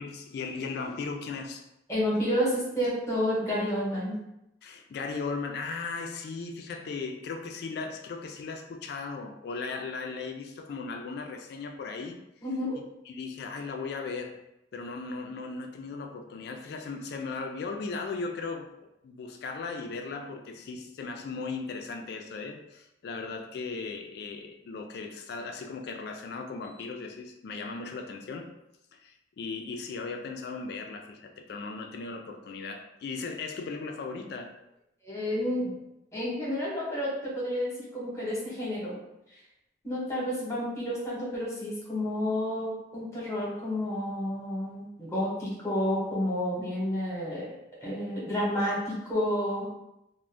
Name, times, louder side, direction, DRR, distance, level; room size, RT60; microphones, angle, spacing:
voice 1, 0.0-1.6 4.6-12.2 13.1-14.4 14.7-18.7 19.0-28.5 28.9-34.5, left 4 dB, 55° left, 4 dB, 0.3 m, -37 dB
voice 2, 1.9-4.2 12.4-12.8 35.0-35.7 36.1-39.0 39.3-39.4 39.8-47.5 47.8-49.6, equal, 15° left, -6 dB, 0.9 m, -30 dB
2.5 x 2.1 x 3.2 m, 0.87 s
head